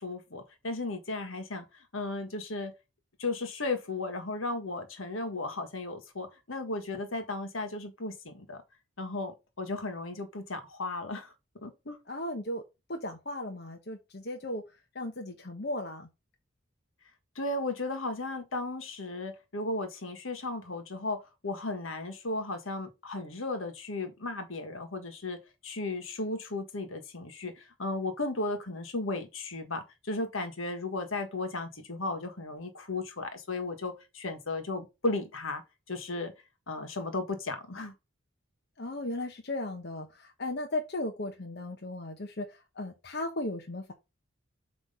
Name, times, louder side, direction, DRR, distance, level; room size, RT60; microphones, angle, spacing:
voice 1, 0.0-2.7 3.2-8.6 9.0-11.3 11.6-12.0 17.3-35.6 35.9-36.3 36.7-37.9, left 2 dB, 80° left, 1.5 m, -35 dB
voice 2, 12.1-12.6 12.9-14.6 14.9-16.1 38.8-43.9, left 1 dB, 50° left, 0.9 m, -36 dB
7.6 x 3.2 x 5.5 m
head